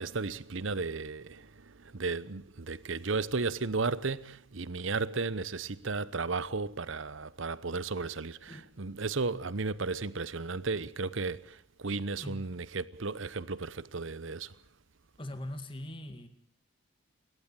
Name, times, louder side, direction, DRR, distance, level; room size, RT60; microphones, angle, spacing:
voice 1, 0.0-14.5, right 4 dB, 70° right, 0.9 m, -34 dB
voice 2, 11.9-12.6 15.2-16.3, left 1 dB, 25° left, 2.1 m, -42 dB
30.0 x 13.0 x 9.1 m
head